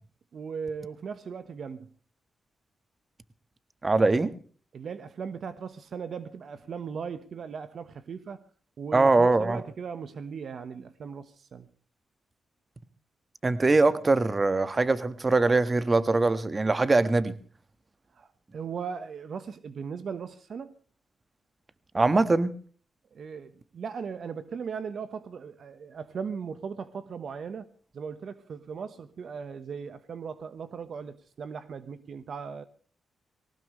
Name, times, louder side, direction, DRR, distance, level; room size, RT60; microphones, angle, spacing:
voice 1, 0.3-1.9 4.7-8.4 8.8-11.7 18.1-20.7 23.1-27.7 27.9-32.6, right 6 dB, 65° right, 1.2 m, -38 dB
voice 2, 3.8-4.3 8.9-9.6 13.4-17.3 21.9-22.5, right 3 dB, 30° right, 1.4 m, -22 dB
20.0 x 18.0 x 3.2 m
cardioid pair, 65°, 0 cm